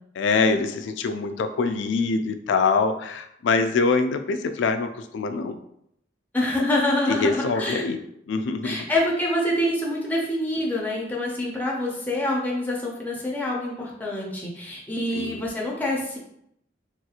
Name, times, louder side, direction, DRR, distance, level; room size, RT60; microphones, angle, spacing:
voice 1, 0.2-5.6 7.1-8.0 8.3-8.8 15.1-15.4, left 4 dB, 75° left, 8 dB, 0.3 m, -24 dB
voice 2, 6.3-7.9 8.6-16.2, left 1 dB, 10° left, -3 dB, 0.5 m, -26 dB
3.0 x 2.9 x 2.4 m, 0.75 s
head